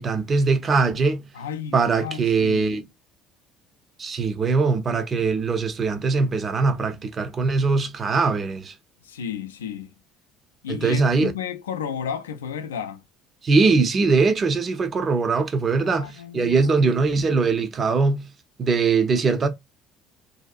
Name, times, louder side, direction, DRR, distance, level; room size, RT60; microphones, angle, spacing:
voice 1, 0.0-1.2 1.7-2.8 4.0-8.7 10.7-11.3 13.4-18.3 18.6-19.5, right 4 dB, 35° right, 0.6 m, -21 dB
voice 2, 1.3-2.7 9.0-9.9 10.6-13.0 15.8-16.9, left 8 dB, 75° left, 0.3 m, -33 dB
2.7 x 2.3 x 2.4 m
figure-of-eight pair, 60°, 0 cm